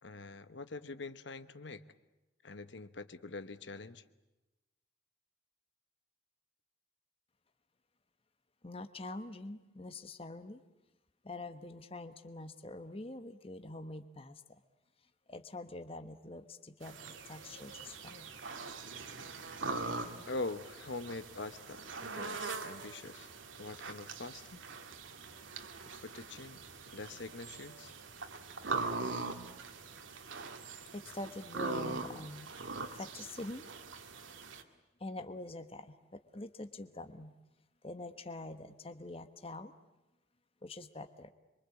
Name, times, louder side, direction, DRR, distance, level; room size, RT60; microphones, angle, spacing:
voice 1, 0.0-1.8 2.4-4.0 20.3-23.3 23.6-24.6 25.8-26.6 26.9-27.9, left 3 dB, 60° left, 12 dB, 1.1 m, -44 dB
voice 2, 8.6-10.6 11.2-14.4 15.3-17.0 17.3-18.3 30.9-32.5 32.9-33.7 35.0-37.3 37.8-39.7 40.6-41.3, left 2 dB, 30° left, 9 dB, 1.2 m, -45 dB
sound 1, 16.8-34.6, right 3 dB, 75° right, 2.1 m, -42 dB
27.0 x 24.0 x 8.4 m, 1.0 s
head